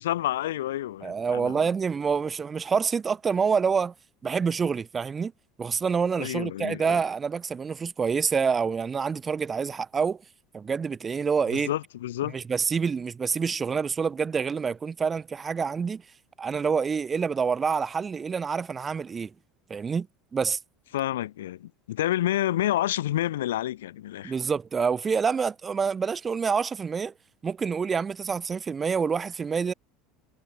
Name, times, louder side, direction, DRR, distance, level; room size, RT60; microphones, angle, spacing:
voice 1, 0.0-1.6 6.2-7.0 11.5-12.4 20.9-24.3, left 13 dB, 80° left, 0.7 m, -29 dB
voice 2, 1.0-3.9 4.2-5.3 5.6-10.2 10.5-11.7 12.3-16.0 16.4-19.3 19.7-20.1 20.3-20.6 24.2-27.1 27.4-29.7, right 6 dB, 25° right, 0.5 m, -27 dB
hypercardioid pair, 85°, 0 cm